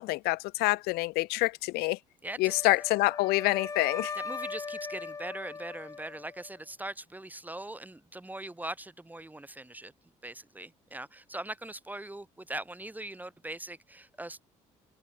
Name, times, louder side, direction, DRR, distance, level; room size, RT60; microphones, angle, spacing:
voice 1, 0.0-2.0 2.4-4.1, left 22 dB, 70° left, 0.6 m, -27 dB
voice 2, 2.2-2.7 4.1-9.9 10.2-14.4, right 1 dB, 10° right, 1.3 m, -41 dB
Wind instrument woodwind instrument, 2.5-6.6, left 4 dB, 20° left, 0.4 m, -39 dB
hypercardioid pair, 50°, 17 cm